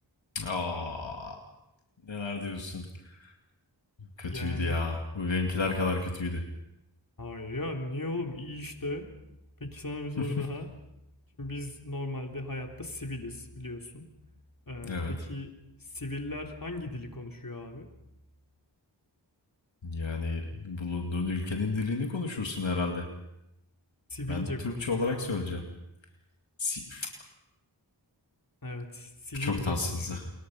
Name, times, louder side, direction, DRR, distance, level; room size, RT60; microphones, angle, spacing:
voice 1, 0.3-1.4 2.1-3.3 4.2-6.4 10.2-10.5 14.8-15.1 19.8-23.1 24.3-25.6 26.6-27.1 29.3-30.3, left 3 dB, 85° left, 2 dB, 2.4 m, -32 dB
voice 2, 4.3-4.8 7.2-9.1 9.6-10.7 11.4-14.0 14.7-15.5 15.9-17.9 24.1-25.3 28.6-30.3, left 2 dB, 50° left, 3 dB, 3.7 m, -37 dB
29.5 x 22.5 x 5.7 m, 0.87 s
wide cardioid pair, 45°, 44 cm